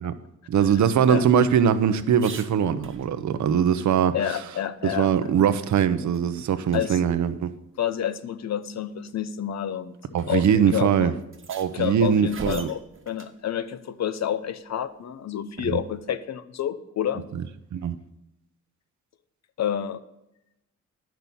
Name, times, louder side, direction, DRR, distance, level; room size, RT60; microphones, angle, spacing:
sound 1, 0.5-3.5 3.9-4.0 4.4-5.8 6.1-6.3 6.7-6.8 7.9-8.0 8.9-9.2 10.2-10.3 10.5-10.6 11.2-13.4 15.7-16.1, right 5 dB, 45° right, 1.3 m, -44 dB
voice 1, 0.5-4.2 4.8-7.5 10.1-11.1 11.5-12.7 15.7-15.8 17.3-17.4 17.7-17.9, right 8 dB, 70° right, 12 dB, 0.8 m, -21 dB
voice 2, 4.1-5.1 6.7-7.0 7.8-9.9 10.3-11.1 11.7-17.3 19.6-20.0, left 9 dB, 60° left, 13 dB, 0.8 m, -29 dB
10.5 x 6.1 x 7.0 m, 0.88 s
cardioid pair, 95°, 30 cm